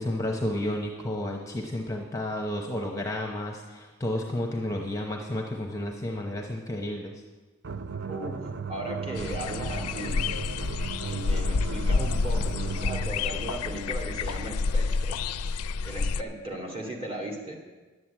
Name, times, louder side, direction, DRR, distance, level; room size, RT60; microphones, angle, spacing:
voice 1, 0.0-7.2, left 1 dB, 15° left, 1 dB, 0.8 m, -31 dB
sound 1, 7.6-13.3, right 5 dB, 50° right, 0.5 m, -36 dB
voice 2, 8.1-8.4 8.7-10.3 11.0-15.2 15.8-17.6, right 1 dB, 25° right, -1 dB, 2.3 m, -37 dB
sound 2, 9.1-16.2, left 4 dB, 85° left, 0.4 m, -29 dB
11.0 x 7.8 x 8.6 m, 1.3 s
head